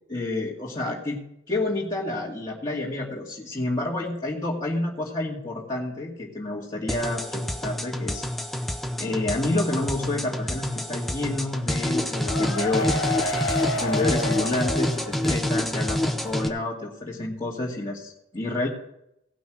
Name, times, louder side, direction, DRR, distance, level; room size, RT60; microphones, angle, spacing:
voice 1, 0.1-1.2 1.5-8.2 9.0-13.0 13.8-18.7, left 2 dB, 20° left, -7 dB, 2.4 m, -29 dB
sound 1, 6.9-16.5, left 1 dB, ahead, 0.8 m, -27 dB
sound 2, 11.9-15.5 15.8-15.9 16.3-16.4, left 2 dB, 75° left, 1.3 m, -29 dB
17.5 x 6.2 x 6.2 m, 0.79 s
head